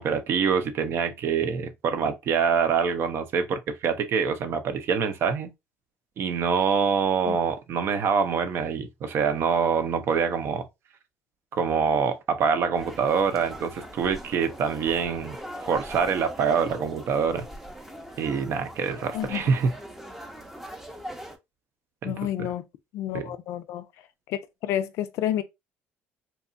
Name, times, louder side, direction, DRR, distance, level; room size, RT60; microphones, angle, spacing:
voice 1, 0.0-5.5 6.2-10.7 11.5-15.4 15.6-17.5 18.2-19.8 22.0-22.5 23.1-23.3, right 6 dB, 55° right, 0.5 m, -25 dB
sound 1, 12.8-21.4, equal, 5° right, 0.5 m, -41 dB
voice 2, 22.0-22.6 22.9-23.8 24.3-25.4, left 12 dB, 70° left, 0.4 m, -30 dB
2.8 x 2.3 x 2.5 m
supercardioid pair, 95°, 5 cm